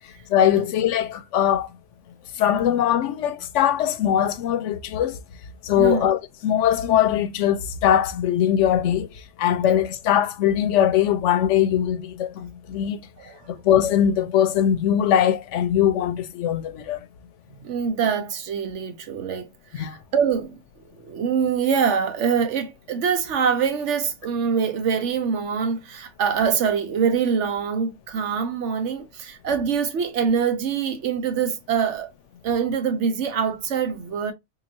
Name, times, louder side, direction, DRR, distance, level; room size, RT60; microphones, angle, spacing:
voice 1, 0.3-1.7 2.4-5.2 5.6-9.1 9.4-13.0 13.5-17.0 19.7-20.0, left 10 dB, 85° left, 0.9 m, -21 dB
voice 2, 5.8-6.1 13.2-13.4 17.6-19.5 19.7-20.5 21.0-32.1 32.4-34.3, right 6 dB, 80° right, 1.1 m, -24 dB
3.8 x 2.9 x 2.6 m
omnidirectional pair, 1.2 m